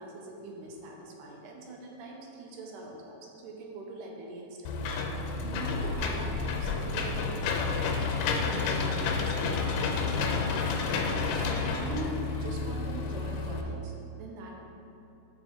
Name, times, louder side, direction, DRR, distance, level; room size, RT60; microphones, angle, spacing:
voice 1, 0.0-4.7 5.1-10.2 11.0-14.6, right 2 dB, 80° right, 0 dB, 2.3 m, -42 dB
Engine / Mechanisms, 4.7-13.6, left 4 dB, 85° left, 2.2 m, -30 dB
7.1 x 5.2 x 3.7 m, 2.8 s
omnidirectional pair, 3.7 m